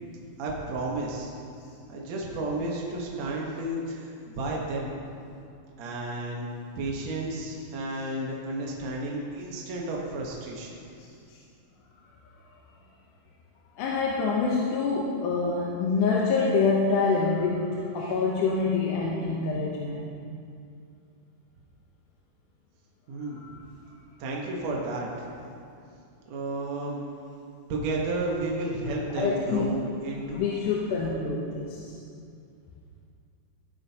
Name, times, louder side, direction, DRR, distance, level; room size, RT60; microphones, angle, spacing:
voice 1, 0.4-1.3 1.9-4.9 5.8-6.5 6.8-10.7 23.1-23.6 24.2-25.3 26.3-27.0 27.7-30.5, right 2 dB, 65° right, -2 dB, 2.3 m, -32 dB
voice 2, 13.8-20.1 23.2-23.5 29.1-29.7 30.3-32.0, left 4 dB, 80° left, -3 dB, 2.4 m, -26 dB
16.5 x 9.7 x 2.8 m, 2.4 s
omnidirectional pair, 3.6 m